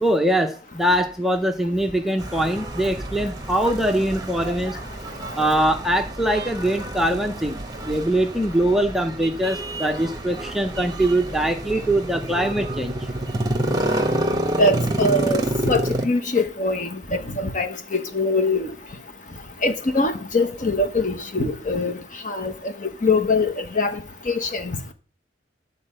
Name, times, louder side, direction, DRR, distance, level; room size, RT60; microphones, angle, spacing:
voice 1, 0.0-4.8 5.3-7.6 7.8-12.9, right 1 dB, ahead, 0.6 m, -22 dB
sound 1, 2.2-16.0, right 1 dB, 20° right, 1.0 m, -28 dB
voice 2, 14.6-18.7 19.6-22.0 22.2-24.9, left 2 dB, 40° left, 1.1 m, -23 dB
11.0 x 4.3 x 7.8 m
head